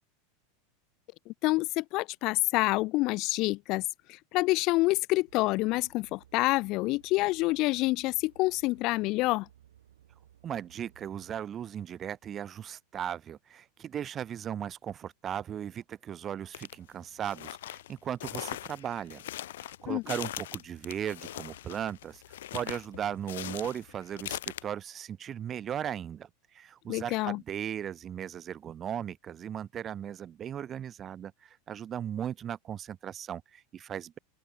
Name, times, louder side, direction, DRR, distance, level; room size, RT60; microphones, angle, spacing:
voice 1, 1.3-3.8 4.3-9.5 19.9-20.0 26.9-27.4, left 21 dB, 50° left, 0.6 m, -27 dB
sound 1, 5.3-11.4, right 11 dB, 85° right, 5.3 m, -60 dB
voice 2, 10.4-19.2 19.6-26.3 26.5-34.2, right 9 dB, 30° right, 2.8 m, -37 dB
sound 2, 16.5-16.7 17.2-24.6, left 13 dB, 80° left, 1.4 m, -40 dB
open air
hypercardioid pair, 110°, 0 cm